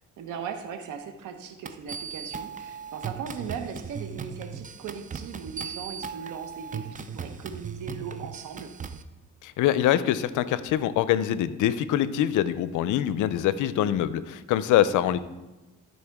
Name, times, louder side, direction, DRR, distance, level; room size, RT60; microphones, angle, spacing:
voice 1, 0.2-8.7 14.8-15.1, right 6 dB, 80° right, 6 dB, 1.1 m, -38 dB
sound 1, 1.7-9.0, right 6 dB, 25° right, 0.5 m, -38 dB
voice 2, 9.4-15.2, left 11 dB, 80° left, 15 dB, 0.5 m, -24 dB
13.0 x 4.3 x 3.5 m, 1.1 s
cardioid pair, 90°, 30 cm